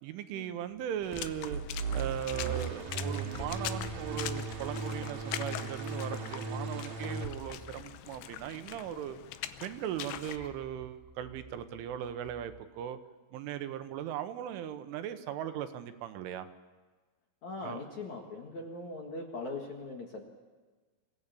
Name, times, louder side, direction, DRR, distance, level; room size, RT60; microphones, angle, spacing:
voice 1, 0.0-9.2 9.6-13.0 13.3-16.5 17.6-17.8, right 10 dB, 80° right, 9 dB, 3.5 m, -38 dB
sound 1, 0.7-12.6, equal, 5° right, 1.9 m, -52 dB
Water / Splash splatter, 1.0-10.4, left 13 dB, 75° left, 2.8 m, -43 dB
sound 2, 1.5-7.3, right 4 dB, 50° right, 3.1 m, -37 dB
voice 2, 17.4-20.2, left 2 dB, 50° left, 1 dB, 2.4 m, -40 dB
26.5 x 16.5 x 8.4 m, 1.3 s
omnidirectional pair, 5.7 m